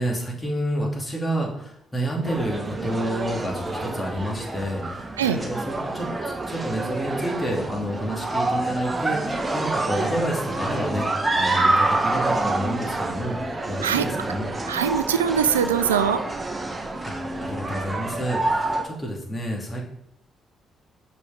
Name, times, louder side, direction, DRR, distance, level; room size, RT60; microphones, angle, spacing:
voice 1, 0.0-13.4 13.7-14.5 17.0-17.1 17.4-19.8, equal, 25° left, -2 dB, 3.0 m, -29 dB
sound 1, 2.2-18.8, right 2 dB, 25° right, 1.5 m, -27 dB
voice 2, 14.7-16.2, right 8 dB, 90° right, 11 dB, 0.3 m, -22 dB
6.3 x 5.5 x 5.4 m, 0.75 s
hypercardioid pair, 45°, 0 cm